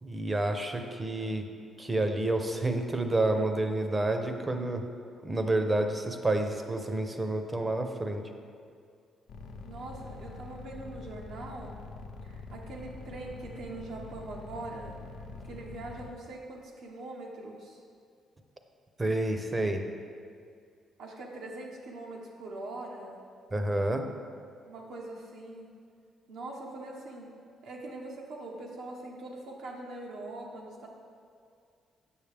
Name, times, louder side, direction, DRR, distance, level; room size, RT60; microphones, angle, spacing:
voice 1, 0.0-1.5 1.8-4.8 5.2-8.2 19.0-19.8 23.5-24.0, right 2 dB, 25° right, 6 dB, 0.6 m, -29 dB
sound 1, 9.3-16.1, left 3 dB, 75° left, 0.6 m, -44 dB
voice 2, 9.6-11.8 12.2-15.0 15.4-17.8 21.0-23.3 24.7-25.7 26.3-27.3 27.6-30.9, right 2 dB, 80° right, -1 dB, 0.9 m, -42 dB
7.1 x 6.3 x 3.4 m, 2.3 s
cardioid pair, 90°, 0 cm